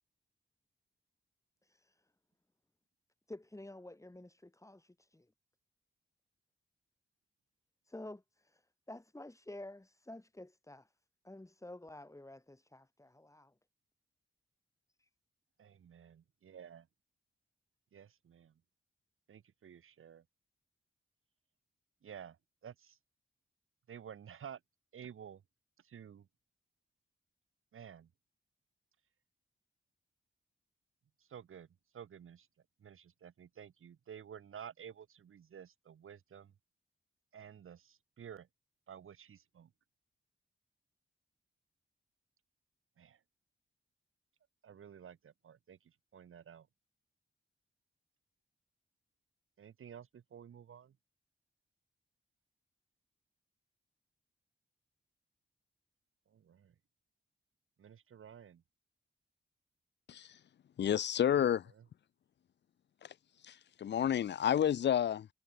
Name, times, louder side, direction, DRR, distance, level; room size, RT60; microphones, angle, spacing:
voice 1, 1.6-2.0 3.3-5.3 7.9-10.9 11.2-13.5 15.0-15.1, left 1 dB, 15° left, 7.0 m, -51 dB
voice 2, 15.6-16.9 17.9-18.6 19.3-20.2 22.0-23.0 23.9-24.6 24.9-25.4 25.8-26.3 27.7-28.1 31.2-31.7 31.9-32.5 32.8-36.5 37.3-38.5 38.9-39.7 43.0-43.2 44.6-46.7 49.6-51.0 56.3-56.7 57.8-58.6 61.4-61.5 61.7-61.8, right 8 dB, 90° right, 6.3 m, -52 dB
voice 3, 60.8-61.7 63.0-63.1 63.4-65.3, left 9 dB, 60° left, 0.5 m, -30 dB
cardioid pair, 85°, 21 cm